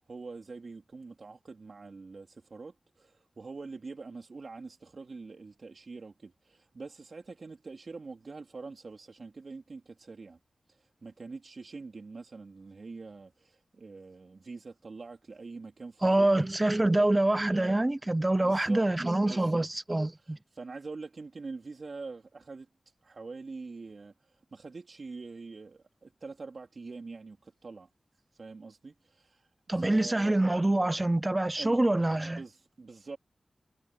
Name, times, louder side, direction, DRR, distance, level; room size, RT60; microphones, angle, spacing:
voice 1, 0.1-10.4 11.0-16.4 16.8-17.1 18.4-18.8 19.2-19.7 20.3-22.7 23.0-24.1 24.5-27.9 28.4-29.4 29.8-30.4 31.6-31.8 32.3-33.2, right 4 dB, 65° right, 3.9 m, -44 dB
voice 2, 16.0-20.4 29.7-32.4, right 1 dB, 25° right, 0.8 m, -26 dB
cardioid pair, 45°, 0 cm